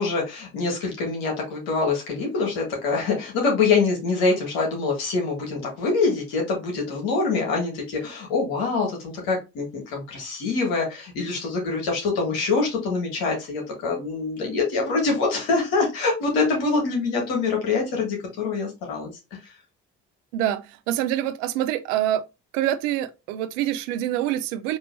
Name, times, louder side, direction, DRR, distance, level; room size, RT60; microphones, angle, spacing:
voice 1, 0.0-19.1, left 4 dB, 75° left, 1.7 m, -25 dB
voice 2, 20.3-22.2 22.5-24.8, right 12 dB, 80° right, 0.5 m, -26 dB
4.4 x 2.9 x 3.1 m
hypercardioid pair, 45°, 37 cm